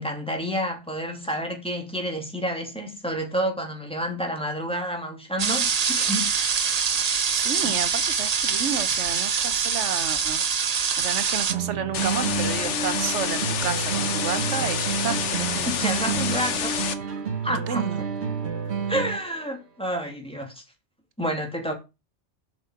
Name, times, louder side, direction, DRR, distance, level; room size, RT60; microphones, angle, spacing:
voice 1, 0.0-6.3 7.6-7.8 15.7-16.7 17.4-17.9 18.9-20.6 21.2-21.7, equal, 5° left, 2.4 m, -29 dB
sound 1, 5.4-11.5, right 6 dB, 40° right, 0.7 m, -24 dB
voice 2, 7.3-10.4 11.0-16.4 17.7-18.0, right 7 dB, 85° right, 1.2 m, -31 dB
sound 2, 11.5-19.5, right 6 dB, 65° right, 1.5 m, -29 dB
sound 3, 11.9-16.9, left 7 dB, 80° left, 1.3 m, -28 dB
7.4 x 6.2 x 5.9 m
omnidirectional pair, 1.2 m